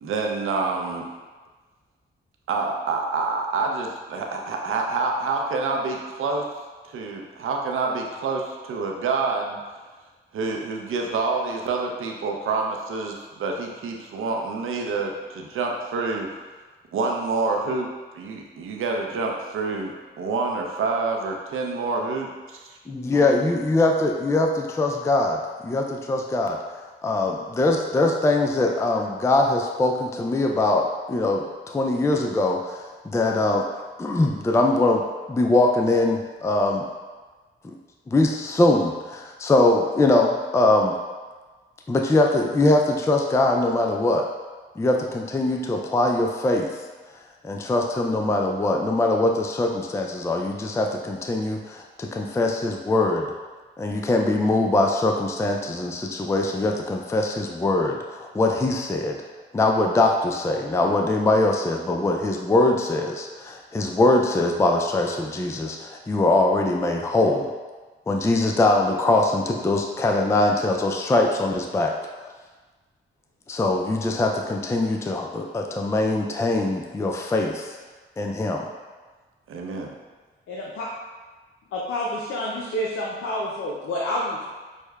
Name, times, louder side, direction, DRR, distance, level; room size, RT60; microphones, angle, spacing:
voice 1, 0.0-1.1 2.5-6.5 6.8-9.6 10.3-16.4 16.9-17.9 18.1-19.9 20.2-22.6 79.5-79.9, right 3 dB, 75° right, 1 dB, 0.6 m, -27 dB
voice 2, 22.9-26.6 27.0-33.7 34.0-36.9 37.6-37.8 38.1-40.9 41.9-44.3 44.8-46.8 47.4-53.3 53.8-59.2 59.5-67.5 68.1-72.0 73.5-77.8 78.2-78.7, left 2 dB, 15° left, 2 dB, 0.3 m, -22 dB
voice 3, 80.5-80.9 81.7-84.4, left 1 dB, 75° left, -4 dB, 0.5 m, -28 dB
6.3 x 2.1 x 2.3 m, 1.3 s
supercardioid pair, 50°, 21 cm